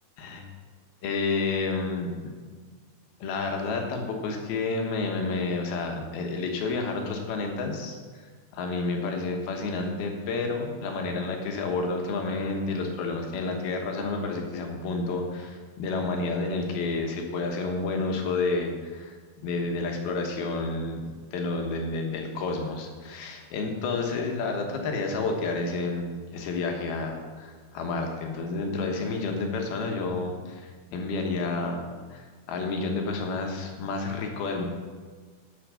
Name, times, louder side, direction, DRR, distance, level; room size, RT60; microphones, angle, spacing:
voice 1, 1.0-2.2 3.2-8.3 8.5-19.2 19.4-21.0 21.3-31.8 32.1-34.7, left 3 dB, 65° left, 2 dB, 2.6 m, -30 dB
9.8 x 7.1 x 6.9 m, 1.5 s
omnidirectional pair, 5.6 m